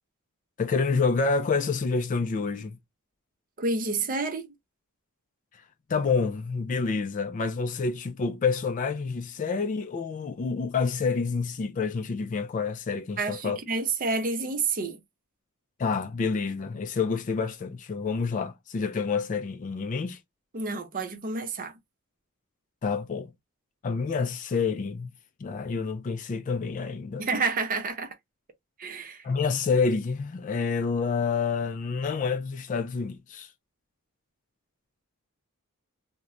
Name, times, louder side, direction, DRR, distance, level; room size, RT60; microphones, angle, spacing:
voice 1, 0.6-2.8 5.9-13.6 15.8-20.2 22.8-23.3 23.8-25.1 25.4-27.3 29.2-33.5, left 4 dB, 35° left, 0.3 m, -28 dB
voice 2, 3.6-4.5 13.2-15.0 20.5-21.7 27.2-28.1 28.8-29.2, right 3 dB, 40° right, 0.6 m, -29 dB
2.9 x 2.1 x 2.4 m
head